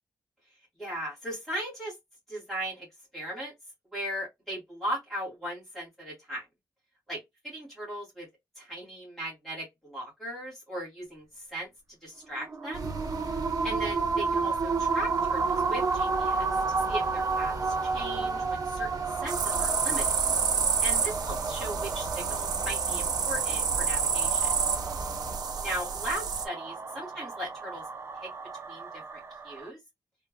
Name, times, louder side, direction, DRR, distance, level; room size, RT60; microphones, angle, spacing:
voice 1, 0.8-1.9 2.3-2.9 3.1-3.5 3.9-6.4 7.1-7.2 7.4-8.3 8.6-11.7 12.0-12.9 13.6-20.2 20.8-24.5 25.6-27.9 28.2-28.3 28.7-29.8, right 1 dB, 5° left, 2.7 m, -38 dB
sound 1, 12.4-29.7, right 4 dB, 35° right, 0.5 m, -32 dB
sound 2, 12.7-25.4, right 3 dB, 60° right, 1.1 m, -41 dB
sound 3, 19.3-26.4, right 6 dB, 75° right, 0.7 m, -29 dB
3.7 x 3.5 x 2.3 m
wide cardioid pair, 180°, 7 cm